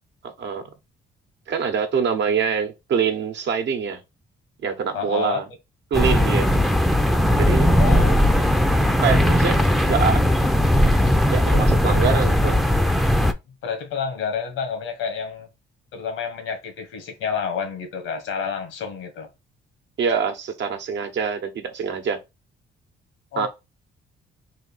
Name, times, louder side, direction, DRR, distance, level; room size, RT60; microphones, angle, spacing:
voice 1, 0.4-0.7 1.5-4.0 4.6-5.4 5.9-6.5 7.4-7.7 9.0-9.6 9.9-10.2 11.3-12.6 20.0-22.2 23.4-23.5, right 6 dB, 65° right, 1.0 m, -24 dB
voice 2, 4.9-5.4 7.8-8.2 13.6-15.5 15.9-19.3 23.3-23.5, left 6 dB, 85° left, 1.5 m, -29 dB
sound 1, 5.9-13.3, left 1 dB, ahead, 0.5 m, -18 dB
4.0 x 2.7 x 4.0 m
cardioid pair, 90°, 20 cm